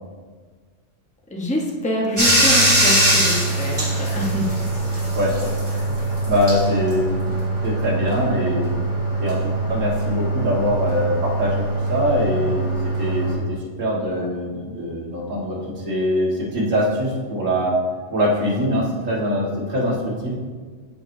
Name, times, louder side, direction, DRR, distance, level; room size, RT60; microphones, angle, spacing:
voice 1, 1.3-4.5, equal, 5° left, -2 dB, 0.8 m, -25 dB
Bathtub (filling or washing), 2.2-13.3, right 1 dB, 20° right, 2.1 m, -22 dB
voice 2, 5.1-7.2 7.6-8.7 9.2-17.8 18.1-20.3, equal, 80° right, -4 dB, 2.0 m, -23 dB
12.5 x 4.5 x 2.7 m, 1.5 s
omnidirectional pair, 1.3 m